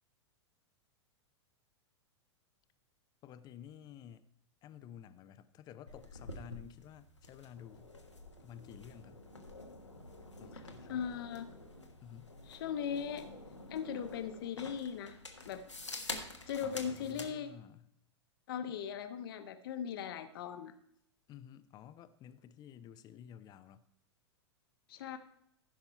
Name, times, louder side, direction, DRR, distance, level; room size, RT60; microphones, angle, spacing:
voice 1, 3.2-4.2 4.6-7.9 8.4-9.2 10.4-11.1 12.0-12.3 16.6-17.8 21.3-23.8, left 10 dB, 25° left, 13 dB, 0.6 m, -52 dB
sound 1, 5.9-17.3, left 2 dB, 85° left, 1.3 m, -48 dB
voice 2, 10.5-11.5 12.5-13.3 13.7-15.2 15.4-15.6 16.5-17.5 18.5-20.7 24.9-25.2, left 8 dB, 50° left, 9 dB, 1.0 m, -39 dB
15.0 x 5.9 x 4.4 m, 0.73 s
figure-of-eight pair, 95°, 15 cm